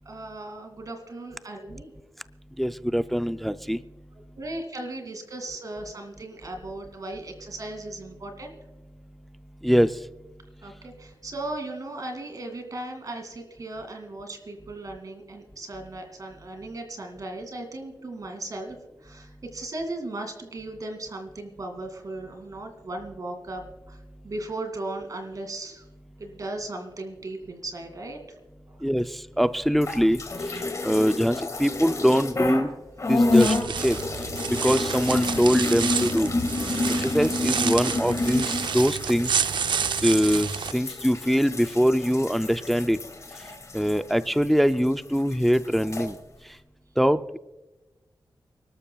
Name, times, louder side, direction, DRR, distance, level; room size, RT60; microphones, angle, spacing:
voice 1, 0.1-1.9 4.4-8.6 10.6-18.8 19.0-23.6 23.9-24.0 24.2-25.8 26.2-28.2 28.7-28.8, right 2 dB, 50° right, 5 dB, 2.3 m, -37 dB
voice 2, 2.6-3.8 9.6-9.9 28.8-30.2 30.8-32.7 33.1-33.5 33.8-34.0 34.6-36.3 37.0-39.4 40.0-43.0 43.7-46.2 47.0-47.4, equal, ahead, 11 dB, 0.3 m, -23 dB
sound 1, 29.7-32.7 33.0-44.9 45.2-46.1, left 2 dB, 45° left, 1.8 m, -28 dB
sound 2, 33.2-40.7, right 7 dB, 85° right, 0.4 m, -29 dB
30.0 x 12.5 x 2.3 m, 1.1 s
wide cardioid pair, 165°, 8 cm